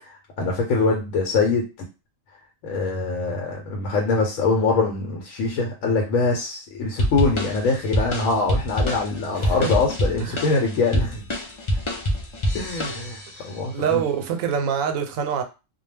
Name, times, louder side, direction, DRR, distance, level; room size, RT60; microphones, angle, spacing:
voice 1, 0.4-1.9 2.6-11.2 12.5-14.0, left 3 dB, 90° left, 1.0 m, -23 dB
sound 1, 7.0-13.4, equal, 45° left, 0.4 m, -26 dB
voice 2, 9.4-9.7 10.2-10.4 13.3-15.4, right 7 dB, 85° right, 1.0 m, -26 dB
2.2 x 2.2 x 3.2 m
omnidirectional pair, 1.4 m